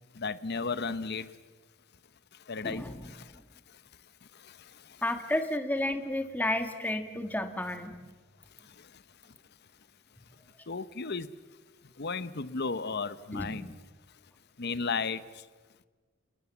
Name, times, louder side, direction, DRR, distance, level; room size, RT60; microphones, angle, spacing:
voice 1, 0.1-1.3 2.5-3.3 4.3-5.0 8.6-9.0 10.7-11.3 12.0-13.8 14.6-15.4, left 4 dB, 50° left, 0.9 m, -35 dB
voice 2, 2.6-3.1 5.0-8.0 13.3-13.6, left 1 dB, 10° left, 1.5 m, -32 dB
28.5 x 21.0 x 7.2 m
head